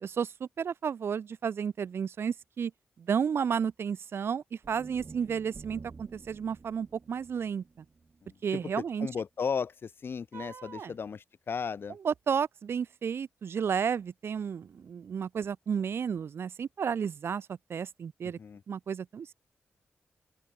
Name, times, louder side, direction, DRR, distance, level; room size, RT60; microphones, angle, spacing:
voice 1, 0.0-2.7 3.1-7.6 8.4-9.1 10.3-10.9 12.0-18.4 18.7-19.3, right 7 dB, 65° right, 0.9 m, -32 dB
sound 1, 4.6-8.9, right 4 dB, 40° right, 5.4 m, -50 dB
voice 2, 8.2-12.0 18.2-18.6, left 6 dB, 55° left, 1.5 m, -36 dB
open air
cardioid pair, 85°, 4 cm